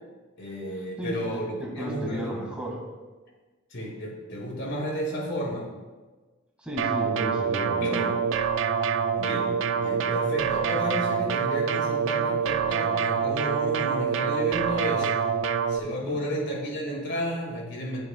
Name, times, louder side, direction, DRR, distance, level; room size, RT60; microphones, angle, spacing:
voice 1, 0.4-2.3 3.7-5.7 7.8-8.1 9.2-9.5 9.8-15.1 15.7-18.0, equal, 60° left, -1 dB, 2.3 m, -32 dB
voice 2, 1.0-2.8 6.6-8.1 15.8-16.2, equal, 5° right, -2 dB, 2.1 m, -34 dB
sound 1, 6.8-15.8, right 6 dB, 65° right, 0.4 m, -26 dB
17.5 x 7.0 x 2.4 m, 1.3 s
head